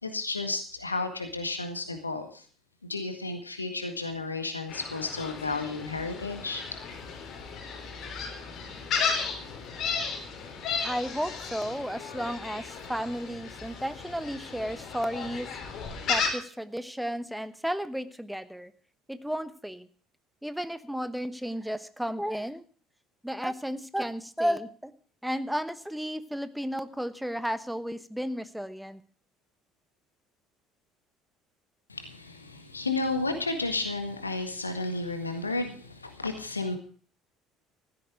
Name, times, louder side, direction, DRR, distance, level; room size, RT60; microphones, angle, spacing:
voice 1, 0.0-2.4 2.9-6.6 31.9-36.8, left 3 dB, 85° left, 7 dB, 1.7 m, -32 dB
Gull seagull, 4.7-16.3, left 5 dB, 50° left, 3.9 m, -34 dB
voice 2, 10.8-15.5 16.1-18.7 19.1-19.9 20.4-22.6 23.2-24.9 25.2-29.0, equal, ahead, 14 dB, 1.0 m, -33 dB
15.5 x 12.5 x 4.9 m, 0.43 s
figure-of-eight pair, 60°, 0 cm